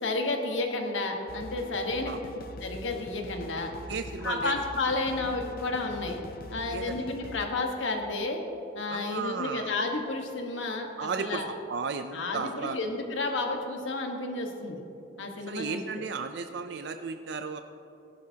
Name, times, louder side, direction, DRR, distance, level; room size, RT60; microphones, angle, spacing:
voice 1, 0.0-2.1 2.6-3.7 4.2-6.2 6.5-8.4 8.7-11.5 12.1-14.8 15.2-16.0, left 2 dB, 85° left, 3 dB, 1.3 m, -31 dB
sound 1, 1.3-7.5, left 1 dB, 50° left, 0.6 m, -43 dB
voice 2, 3.9-4.5 6.7-7.0 8.9-9.7 11.0-12.8 15.5-17.6, right 5 dB, 65° right, 8 dB, 0.4 m, -34 dB
16.5 x 11.5 x 2.8 m, 2.9 s
head